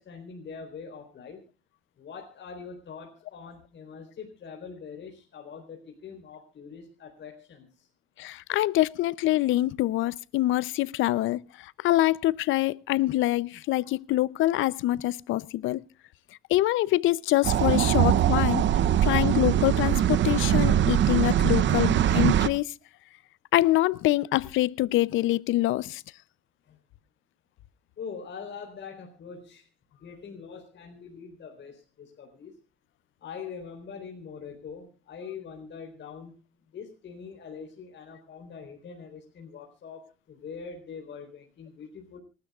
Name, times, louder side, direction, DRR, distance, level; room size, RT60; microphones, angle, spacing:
voice 1, 0.0-1.4 2.0-7.9 26.7-26.8 28.0-29.7 30.0-32.6 33.2-36.4 36.7-42.2, left 6 dB, 65° left, 4.0 m, -43 dB
voice 2, 8.2-15.8 16.5-18.6 19.0-22.7 23.5-26.0, left 16 dB, 85° left, 0.6 m, -25 dB
sound 1, 17.4-22.5, right 10 dB, 70° right, 0.8 m, -22 dB
27.0 x 12.5 x 2.4 m
cardioid pair, 90°, 20 cm